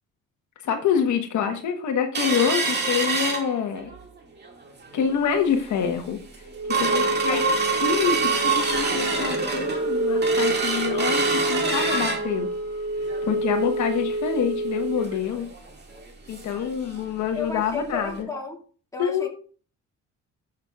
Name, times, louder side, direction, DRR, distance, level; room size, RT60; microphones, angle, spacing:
voice 1, 0.6-3.9 4.9-6.2 6.8-7.4 7.8-12.5 13.0-15.5 16.3-18.3 19.0-19.3, left 7 dB, 75° left, 5 dB, 1.3 m, -26 dB
sound 1, 2.1-4.0 4.4-4.5 4.9-5.2 5.7-5.8 6.1-16.7 17.0-17.1 17.4-17.6 18.1-18.2, right 3 dB, 35° right, 2.1 m, -25 dB
voice 2, 6.7-7.6 17.3-18.6 18.9-19.3, left 4 dB, 10° left, 0 dB, 2.4 m, -34 dB
12.0 x 6.4 x 2.4 m, 0.41 s
cardioid pair, 90°, 30 cm